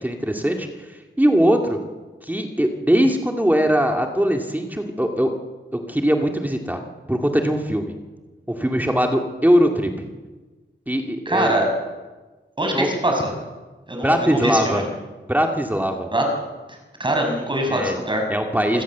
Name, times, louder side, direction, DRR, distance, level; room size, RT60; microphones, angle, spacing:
voice 1, 0.0-1.8 2.2-5.3 5.7-6.8 7.1-7.9 8.5-10.1 10.9-11.5 12.7-12.9 14.0-14.8 15.3-16.1 17.7-18.0 18.3-18.8, equal, 10° right, 3 dB, 2.2 m, -21 dB
voice 2, 11.3-11.7 12.6-13.3 13.9-14.8 16.1-16.3 17.0-18.3 18.7-18.8, right 1 dB, 25° right, 2 dB, 6.2 m, -23 dB
27.5 x 17.5 x 7.3 m, 1.3 s
wide cardioid pair, 110°, 20 cm